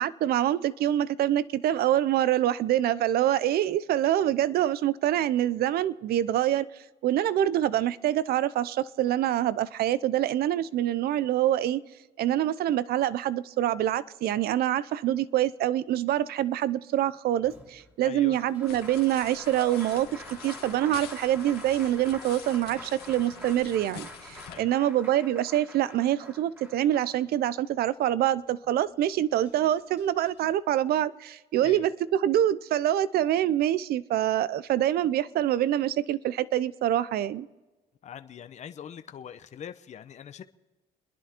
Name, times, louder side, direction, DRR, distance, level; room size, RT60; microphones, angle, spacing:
voice 1, 0.0-6.7 7.0-11.8 12.2-37.5, right 12 dB, 65° right, 0.7 m, -25 dB
Applause, 17.4-27.7 29.1-29.2 29.4-30.5, right 1 dB, 10° right, 2.4 m, -47 dB
voice 2, 18.0-18.4 24.5-24.7 31.5-31.9 38.0-40.4, left 8 dB, 45° left, 0.9 m, -43 dB
sound 1, 18.7-24.6, left 9 dB, 70° left, 1.8 m, -46 dB
30.0 x 11.0 x 4.4 m
cardioid pair, 110°, 17 cm